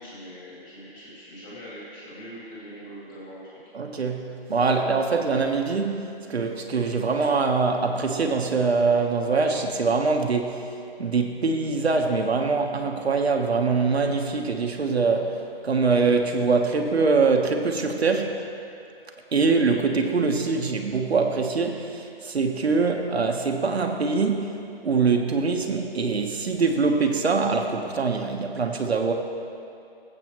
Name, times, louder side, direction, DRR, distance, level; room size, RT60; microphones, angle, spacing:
voice 1, 0.0-3.5, equal, 20° left, -9 dB, 2.6 m, -42 dB
voice 2, 3.7-10.6 11.0-18.5 19.3-29.1, right 4 dB, 85° right, 3 dB, 1.2 m, -23 dB
18.5 x 8.0 x 3.1 m, 2.6 s
hypercardioid pair, 175°, 31 cm